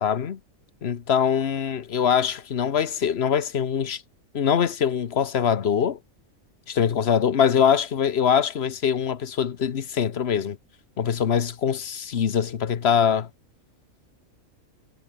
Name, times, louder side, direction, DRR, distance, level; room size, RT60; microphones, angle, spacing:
voice 1, 0.0-0.4 0.8-4.0 4.3-6.0 6.7-10.6 11.0-13.3, left 8 dB, 50° left, 1.2 m, -23 dB
omnidirectional pair, 1.4 m